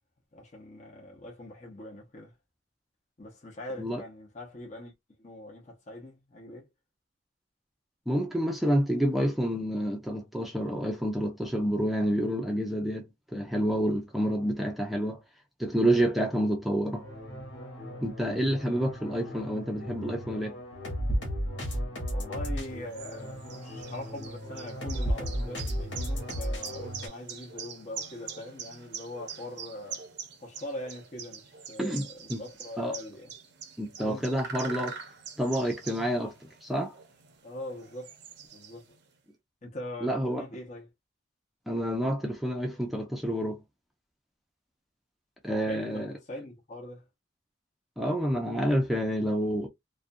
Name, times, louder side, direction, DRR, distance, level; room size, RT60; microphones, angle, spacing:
voice 1, 0.3-2.3 3.2-4.9 5.2-6.7 22.1-30.0 30.4-33.3 34.0-34.4 37.4-38.1 38.5-39.0 39.6-40.9 45.5-47.1, left 1 dB, 40° left, 0.7 m, -42 dB
voice 2, 8.1-15.2 15.6-17.0 18.0-20.6 31.8-32.4 32.8-32.9 33.8-34.9 35.4-36.9 40.0-40.4 41.7-43.6 45.4-46.1 48.0-49.7, equal, ahead, 0.5 m, -28 dB
sound 1, 16.9-27.1, equal, 75° left, 1.1 m, -35 dB
sound 2, 22.5-39.1, right 6 dB, 65° right, 0.6 m, -44 dB
2.4 x 2.2 x 2.5 m
head